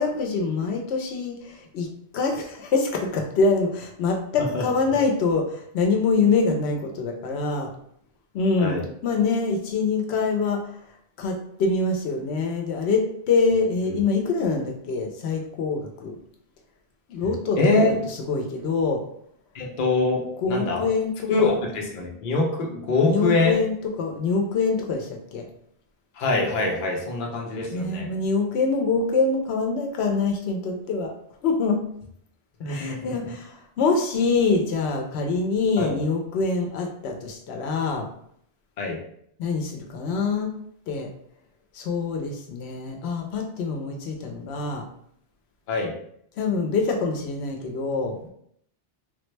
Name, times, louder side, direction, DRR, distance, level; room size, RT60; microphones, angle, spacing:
voice 1, 0.0-1.9 2.1-7.7 8.3-10.6 11.2-16.2 17.1-19.0 20.4-21.5 23.0-25.5 27.7-31.1 31.4-31.8 32.7-38.1 39.4-40.5 40.9-41.1 41.7-44.9 46.4-48.3, left 4 dB, 90° left, 2 dB, 0.9 m, -25 dB
voice 2, 17.6-17.9 19.5-20.9 21.3-23.6 26.2-28.1 32.6-33.3 35.8-36.0 38.8-39.0 45.7-45.9, left 3 dB, 55° left, 0 dB, 0.8 m, -24 dB
3.5 x 2.1 x 3.1 m, 0.69 s
omnidirectional pair, 1.1 m